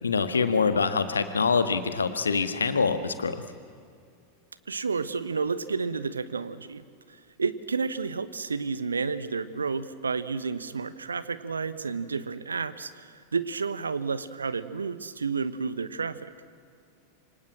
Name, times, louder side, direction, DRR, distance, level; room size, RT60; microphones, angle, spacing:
voice 1, 0.0-3.4, left 5 dB, 75° left, 10 dB, 1.7 m, -25 dB
voice 2, 4.7-16.3, right 5 dB, 75° right, 15 dB, 1.1 m, -31 dB
27.0 x 24.5 x 7.6 m, 2.3 s
figure-of-eight pair, 90°, 0 cm